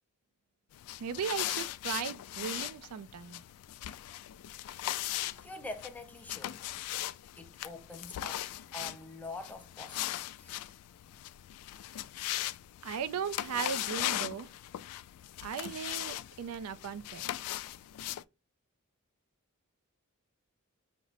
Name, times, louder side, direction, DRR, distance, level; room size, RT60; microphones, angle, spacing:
sound 1, 0.7-18.2, left 14 dB, 80° left, 0.3 m, -39 dB
voice 1, 1.0-3.4 12.8-14.5 15.4-17.3, right 7 dB, 75° right, 0.4 m, -37 dB
voice 2, 5.3-6.6 7.4-8.5 8.7-10.6, left 2 dB, 5° left, 0.5 m, -45 dB
5.8 x 2.0 x 4.0 m
head